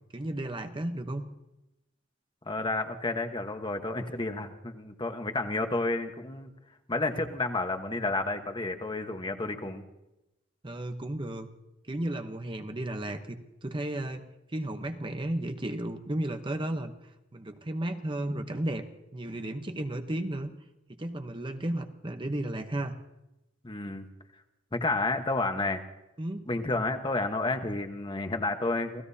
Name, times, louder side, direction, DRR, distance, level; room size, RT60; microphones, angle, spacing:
voice 1, 0.1-1.3 10.6-11.5 11.9-13.4 13.6-16.9 17.3-18.8 19.1-20.5 20.9-22.9 26.2-26.5, right 1 dB, 25° right, 7 dB, 0.9 m, -33 dB
voice 2, 2.4-6.5 6.9-9.8 23.6-24.1 24.7-25.8 26.5-29.0, left 2 dB, 25° left, 6 dB, 1.2 m, -31 dB
29.0 x 17.5 x 2.8 m, 0.93 s
head